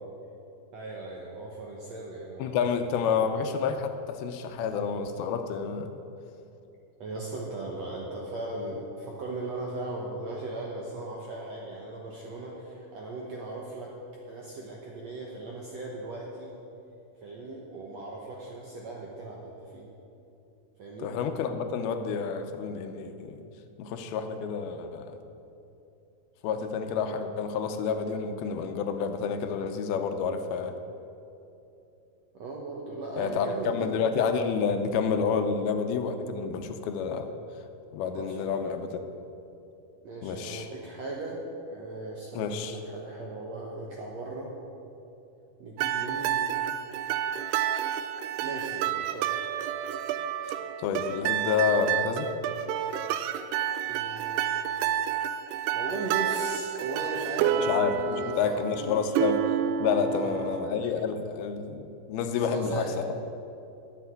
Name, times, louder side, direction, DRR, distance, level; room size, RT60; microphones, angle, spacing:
voice 1, 0.7-2.6 3.1-3.3 7.0-13.9 14.3-16.5 17.2-19.9 20.8-21.1 32.3-33.9 38.1-38.7 40.0-41.4 41.7-44.5 45.6-46.4 48.4-49.5 53.9-54.6 55.7-59.2 60.0-60.3 62.4-62.9, right 2 dB, 70° right, -2 dB, 1.7 m, -38 dB
voice 2, 2.4-5.9 21.0-23.4 23.8-25.2 26.4-30.8 33.2-37.3 37.9-39.0 40.2-40.7 42.3-42.8 50.8-52.3 57.6-59.4 59.8-63.1, left 6 dB, 80° left, 7 dB, 2.5 m, -29 dB
sound 1, 45.8-60.9, right 10 dB, 90° right, 2.6 m, -30 dB
11.0 x 7.9 x 9.4 m, 2.8 s
omnidirectional pair, 4.6 m